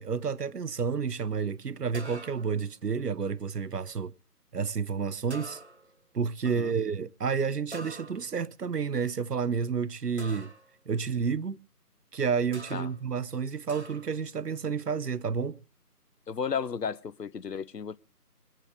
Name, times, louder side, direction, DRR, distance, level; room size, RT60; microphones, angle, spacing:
voice 1, 0.0-4.1 4.5-5.6 6.1-10.5 10.9-11.6 12.1-15.6, right 6 dB, 75° right, 0.7 m, -30 dB
sound 1, 1.9-2.7 5.3-6.0 7.7-8.5 10.2-10.8 12.5-13.0 13.7-14.2, right 2 dB, 45° right, 1.0 m, -45 dB
voice 2, 16.3-18.0, left 6 dB, 85° left, 0.7 m, -33 dB
21.5 x 9.0 x 4.9 m
figure-of-eight pair, 165°, 48 cm